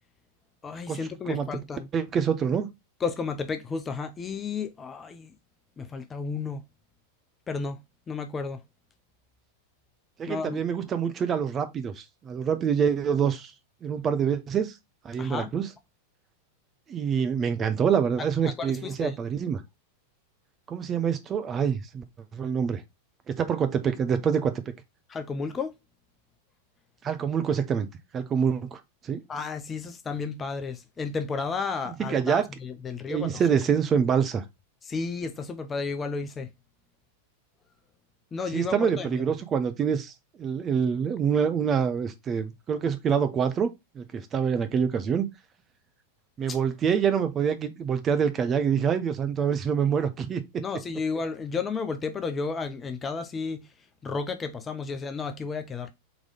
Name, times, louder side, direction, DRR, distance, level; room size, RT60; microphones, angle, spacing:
voice 1, 0.6-1.9 3.0-5.3 5.8-6.6 7.5-7.8 8.1-8.6 10.3-10.6 15.2-15.5 18.6-19.2 25.1-25.8 29.3-33.4 34.8-36.5 38.3-39.2 46.5-46.6 50.6-53.7 54.0-55.9, left 4 dB, 20° left, 0.5 m, -32 dB
voice 2, 1.9-2.7 10.2-13.5 13.8-14.8 15.0-15.7 16.9-19.6 20.7-22.0 22.3-22.8 23.3-24.7 27.0-27.9 28.1-29.2 31.9-32.5 33.1-34.4 38.5-40.1 40.4-43.7 43.9-45.3 46.4-50.6, right 7 dB, 25° right, 0.6 m, -26 dB
3.9 x 3.1 x 3.7 m
figure-of-eight pair, 90°, 0 cm